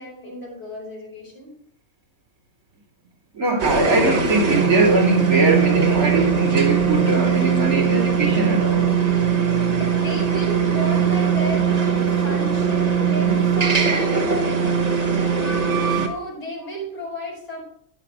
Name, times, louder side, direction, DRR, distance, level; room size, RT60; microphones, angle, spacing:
voice 1, 0.0-1.5 9.8-15.4 16.0-17.6, equal, 40° left, -6 dB, 5.2 m, -33 dB
voice 2, 3.3-9.0, right 2 dB, 75° right, 0 dB, 3.3 m, -21 dB
sound 1, 3.6-16.1, right 7 dB, 30° right, 1.1 m, -20 dB
11.0 x 10.5 x 3.0 m, 0.64 s
omnidirectional pair, 1.5 m